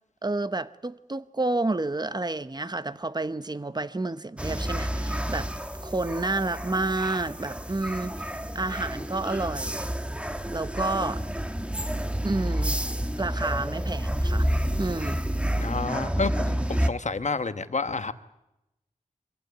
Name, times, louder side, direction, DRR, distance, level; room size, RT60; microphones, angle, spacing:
voice 1, 0.2-5.5 5.8-8.1 8.5-9.9 10.5-11.2 12.2-12.8 13.2-14.5 14.8-15.2, right 2 dB, 30° right, 0.9 m, -30 dB
sound 1, 4.4-16.9, equal, 10° right, 1.2 m, -29 dB
voice 2, 15.6-18.1, left 4 dB, 60° left, 1.2 m, -30 dB
24.5 x 15.5 x 9.4 m
wide cardioid pair, 60°, 14 cm